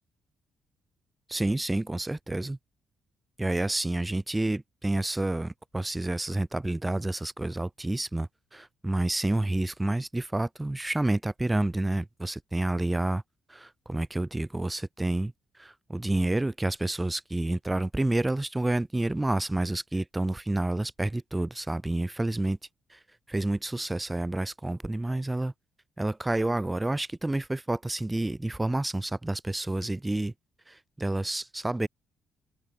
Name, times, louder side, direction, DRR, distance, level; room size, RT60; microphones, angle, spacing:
voice 1, 1.3-2.6 3.4-13.2 13.5-15.3 15.6-22.6 22.9-23.0 23.3-25.5 26.0-30.3 30.7-31.9, right 2 dB, 15° right, 0.7 m, -29 dB
open air
cardioid pair, 90°, 0 cm